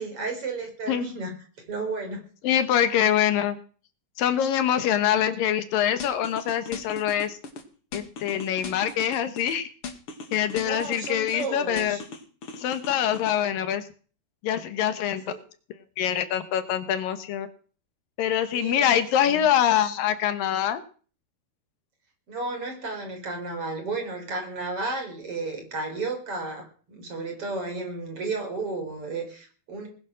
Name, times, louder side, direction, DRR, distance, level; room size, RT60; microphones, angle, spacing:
voice 1, 0.0-1.3 1.7-2.2 10.6-12.0 15.3-15.4 18.5-18.9 19.3-19.4 22.3-29.9, right 3 dB, 40° right, 4 dB, 4.9 m, -33 dB
voice 2, 2.4-3.6 4.2-7.4 7.9-9.7 10.3-12.0 12.6-13.9 14.4-15.2 16.0-17.5 18.2-20.8, left 10 dB, 75° left, 10 dB, 2.8 m, -24 dB
sound 1, 6.0-7.6 7.9-9.5 9.8-11.5 11.8-13.4, left 4 dB, 45° left, 2.3 m, -38 dB
19.5 x 10.5 x 6.3 m, 0.41 s
omnidirectional pair, 4.1 m